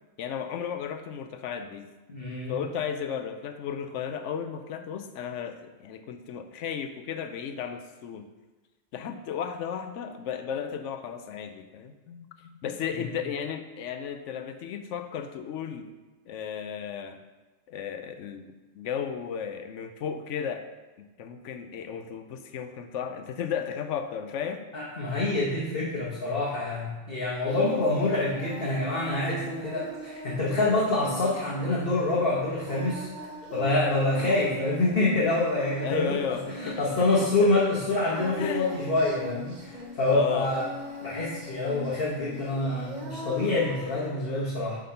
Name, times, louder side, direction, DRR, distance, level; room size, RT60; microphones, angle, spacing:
voice 1, 0.2-1.9 2.5-8.3 8.9-15.9 16.3-17.2 17.7-20.6 21.2-24.6 34.2-34.4 35.8-37.6 38.4-38.7 40.1-40.5, left 8 dB, 80° left, 8 dB, 0.9 m, -34 dB
voice 2, 2.1-2.5 24.7-33.1 33.5-36.2 36.6-40.7 41.0-44.8, left 2 dB, 50° left, -5 dB, 1.3 m, -26 dB
Singing, 27.5-44.1, equal, 40° right, 1.0 m, -41 dB
7.6 x 3.6 x 5.6 m, 1.2 s
omnidirectional pair, 1.3 m